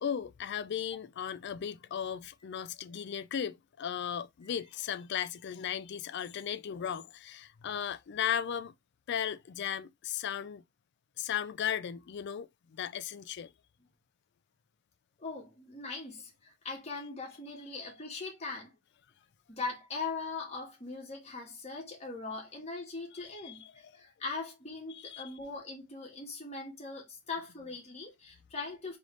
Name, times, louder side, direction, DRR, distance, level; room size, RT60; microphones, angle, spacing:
voice 1, 0.0-8.7 9.1-10.6 11.2-13.5 23.1-23.8 24.9-25.3, left 9 dB, 55° left, 0.4 m, -36 dB
voice 2, 15.2-18.7 19.5-23.6 23.9-29.0, left 4 dB, 30° left, 1.5 m, -40 dB
3.9 x 3.3 x 3.2 m
head